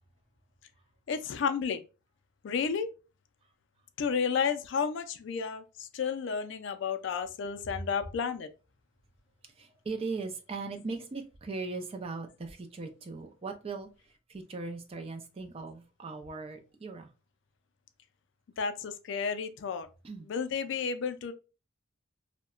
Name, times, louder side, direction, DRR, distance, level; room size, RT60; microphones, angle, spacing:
voice 1, 1.1-1.8 2.4-2.9 4.0-8.5 18.6-19.9 20.2-21.3, left 6 dB, 65° left, 0.3 m, -32 dB
voice 2, 9.6-13.9 14.3-17.1 20.0-20.3, right 3 dB, 30° right, 0.4 m, -39 dB
2.7 x 2.1 x 2.3 m
head